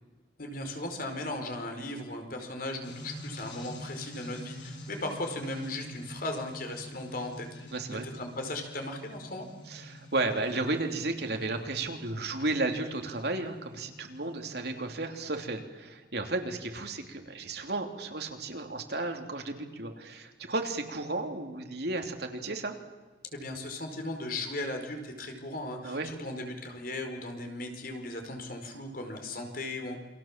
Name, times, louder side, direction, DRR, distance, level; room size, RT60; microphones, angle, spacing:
voice 1, 0.4-7.5 8.1-9.5 23.3-30.0, left 1 dB, 50° left, 4 dB, 4.8 m, -37 dB
sound 1, 2.8-15.0, equal, 90° left, 6.6 m, -47 dB
voice 2, 7.7-8.0 9.7-22.7 25.8-26.1, right 2 dB, 60° right, 4 dB, 3.1 m, -33 dB
28.5 x 24.5 x 7.5 m, 1.2 s
head